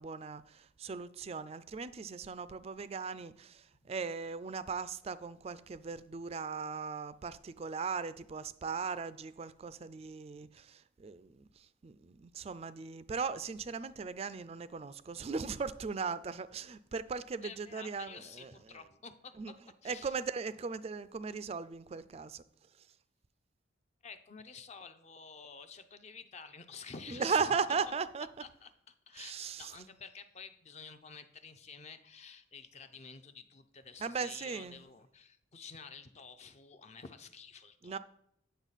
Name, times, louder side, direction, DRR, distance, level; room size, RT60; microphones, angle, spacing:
voice 1, 0.0-18.5 19.4-19.5 19.8-22.4 22.8-22.9 27.1-28.3 29.2-29.7 34.0-34.8 37.8-38.0, right 5 dB, 30° right, 0.3 m, -38 dB
voice 2, 17.4-19.6 19.8-20.2 24.0-27.6 27.9-28.0 28.4-38.0, left 5 dB, 35° left, 0.5 m, -50 dB
9.0 x 6.5 x 4.1 m
head